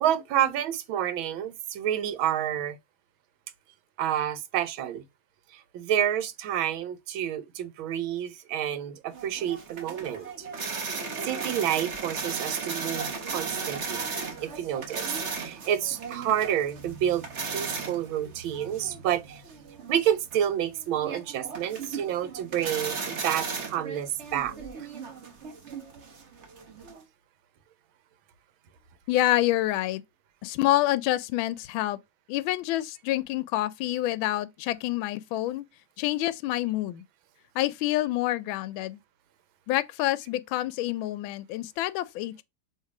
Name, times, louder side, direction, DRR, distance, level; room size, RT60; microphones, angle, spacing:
voice 1, 0.0-2.8 4.0-5.0 5.5-10.5 10.9-11.0 11.2-14.1 14.4-19.4 19.9-24.5 24.8-24.9, right 10 dB, 85° right, 1.6 m, -29 dB
sound 1, 9.1-27.0, right 5 dB, 40° right, 1.3 m, -36 dB
voice 2, 29.1-30.0 30.4-32.0 32.3-35.6 36.0-37.0 37.5-39.0 39.7-42.4, left 15 dB, 85° left, 1.4 m, -27 dB
6.5 x 3.1 x 4.7 m
omnidirectional pair, 2.1 m